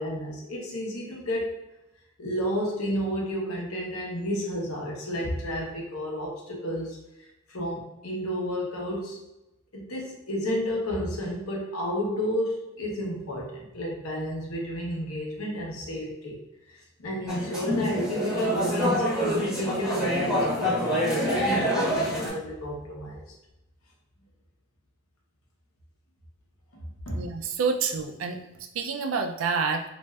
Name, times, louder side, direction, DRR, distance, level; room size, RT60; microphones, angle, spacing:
voice 1, 0.0-1.7 2.2-7.0 7.5-9.2 9.7-16.4 16.7-23.3 26.8-27.3, equal, 90° left, -2 dB, 0.8 m, -32 dB
sound 1, 17.3-22.3, equal, 5° right, 0.9 m, -26 dB
voice 2, 27.1-28.4 28.7-29.8, right 5 dB, 70° right, 5 dB, 0.4 m, -28 dB
2.5 x 2.3 x 3.2 m, 0.95 s
head